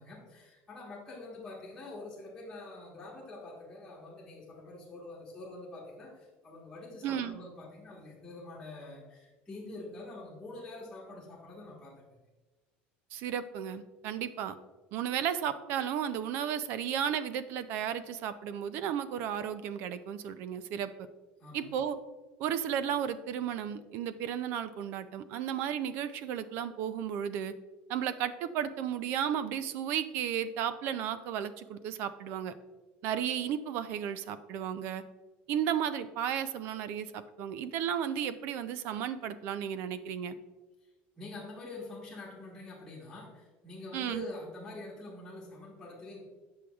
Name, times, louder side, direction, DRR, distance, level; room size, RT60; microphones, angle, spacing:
voice 1, 0.0-12.2 21.4-21.6 40.8-40.9 41.1-46.2, left 2 dB, 10° left, -8 dB, 1.4 m, -46 dB
voice 2, 7.0-7.4 13.1-14.6 14.9-20.9 21.5-22.0 22.4-27.5 27.9-32.5 33.0-35.0 35.5-40.4 43.9-44.2, right 9 dB, 50° right, 13 dB, 0.4 m, -34 dB
8.3 x 6.1 x 2.4 m, 1.2 s
cardioid pair, 165°, 4 cm